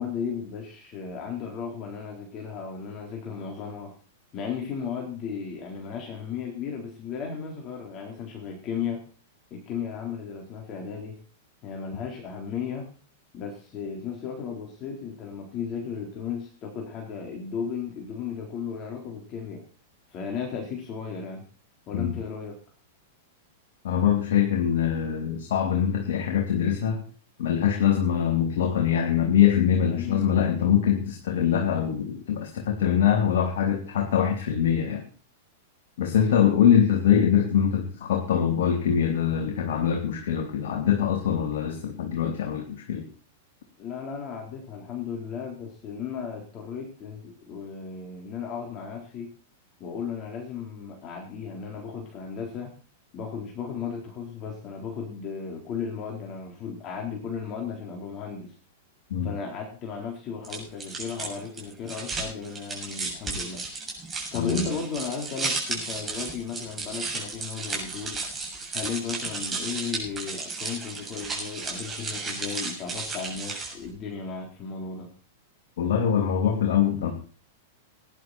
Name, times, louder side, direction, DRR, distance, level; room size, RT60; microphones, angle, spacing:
voice 1, 0.0-3.9 4.3-9.0 9.5-11.2 11.6-12.9 13.3-19.6 20.1-21.4 21.9-22.6 29.9-30.4 36.3-36.7 43.8-49.3 49.8-52.7 53.1-58.5 59.2-63.6 64.3-68.2 68.7-75.1, left 6 dB, 35° left, 0 dB, 4.2 m, -35 dB
voice 2, 23.8-27.0 27.4-35.0 36.0-43.1 59.1-59.3 64.3-64.7 75.8-77.1, left 9 dB, 60° left, 2 dB, 2.7 m, -23 dB
sound 1, 60.4-73.9, right 3 dB, 20° right, 7.0 m, -34 dB
19.0 x 11.0 x 4.5 m, 0.39 s
figure-of-eight pair, 100°, 0 cm